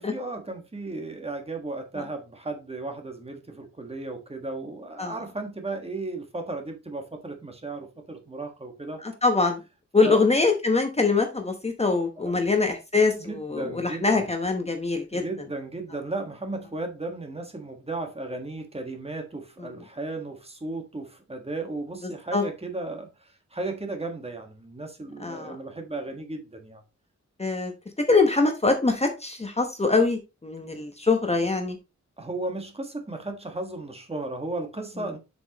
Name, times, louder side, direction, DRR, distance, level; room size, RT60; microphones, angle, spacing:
voice 1, 0.0-9.0 10.0-10.2 12.2-12.4 13.1-14.3 15.1-26.8 32.2-35.2, right 2 dB, 20° right, 1.5 m, -35 dB
voice 2, 9.0-9.6 9.9-15.2 22.0-22.4 25.2-25.6 27.4-27.7 28.1-31.8, left 3 dB, 20° left, 1.0 m, -23 dB
7.5 x 6.1 x 2.9 m
wide cardioid pair, 170°, 29 cm